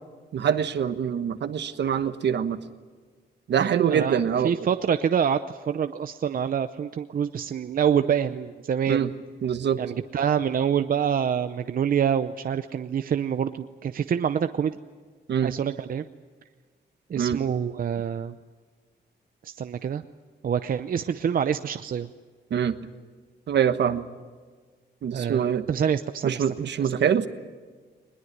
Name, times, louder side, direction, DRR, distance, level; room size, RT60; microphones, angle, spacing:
voice 1, 0.3-2.6 3.5-4.5 8.9-9.1 9.4-9.8 15.3-15.5 17.2-17.4 22.5-22.7 23.5-24.0 25.0-25.7 26.2-27.3, right 8 dB, 75° right, 10 dB, 1.3 m, -24 dB
voice 2, 3.6-9.1 9.8-14.8 15.4-16.0 17.1-18.4 19.4-20.0 20.4-22.1 25.1-26.4 26.8-26.9, right 8 dB, 50° right, 10 dB, 0.7 m, -26 dB
21.5 x 21.0 x 9.3 m, 1.5 s
wide cardioid pair, 130°, 18 cm